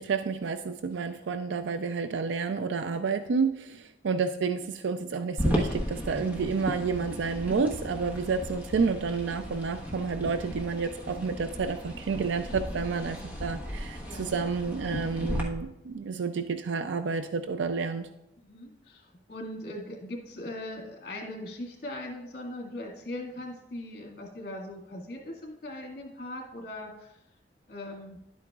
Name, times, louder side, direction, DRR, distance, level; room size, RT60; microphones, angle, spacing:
voice 1, 0.0-18.1, right 5 dB, 90° right, 9 dB, 0.4 m, -30 dB
voice 2, 2.8-3.1 14.0-14.3 18.4-27.1 27.7-28.2, left 1 dB, 60° left, 1 dB, 1.9 m, -40 dB
sound 1, 5.4-15.4, equal, 10° right, 1.2 m, -35 dB
11.0 x 8.4 x 2.4 m, 0.87 s
head